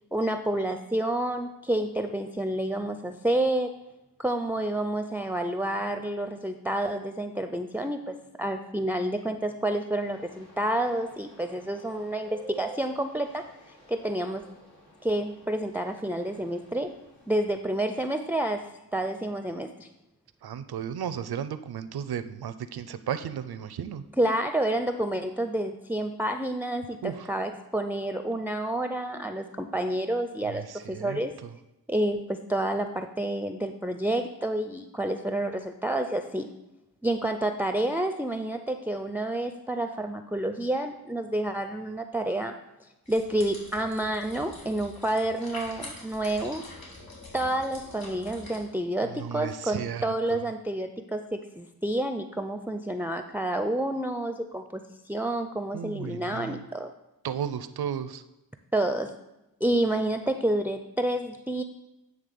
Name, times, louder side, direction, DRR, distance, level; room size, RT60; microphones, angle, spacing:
voice 1, 0.1-3.7 4.2-14.5 15.0-16.9 17.3-19.9 24.2-31.3 31.9-36.5 37.0-42.5 43.1-46.6 47.3-56.9 58.7-59.1 59.6-61.6, right 1 dB, 5° right, 7 dB, 0.5 m, -29 dB
sound 1, 10.0-17.5, right 3 dB, 85° left, 2.8 m, -50 dB
voice 2, 20.4-24.0 27.0-27.3 30.4-31.5 49.1-50.4 55.7-56.6 57.2-58.2, right 8 dB, 85° right, 12 dB, 0.6 m, -34 dB
sound 2, 43.1-48.6, left 2 dB, 70° left, 3.3 m, -45 dB
9.4 x 3.3 x 6.8 m, 0.96 s
cardioid pair, 50°, 37 cm